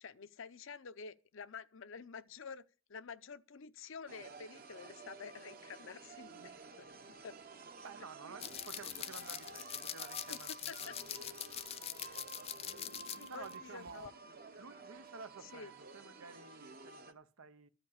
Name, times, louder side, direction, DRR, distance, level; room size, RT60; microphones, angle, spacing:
voice 1, 0.0-2.6 2.9-6.9 7.2-7.4 10.3-10.4 10.7-10.9 12.0-12.2 13.1-14.1 15.5-15.7, left 5 dB, 65° left, 0.7 m, -49 dB
sound 1, 4.1-17.1, right 4 dB, 45° right, 0.9 m, -53 dB
sound 2, 6.1-15.9, equal, 60° right, 1.7 m, -62 dB
voice 2, 7.8-11.4 11.8-12.7 13.3-14.1 14.6-17.7, right 4 dB, 90° right, 0.8 m, -53 dB
sound 3, 8.4-13.5 13.9-14.1, left 10 dB, 30° left, 0.5 m, -44 dB
13.0 x 5.1 x 8.7 m
head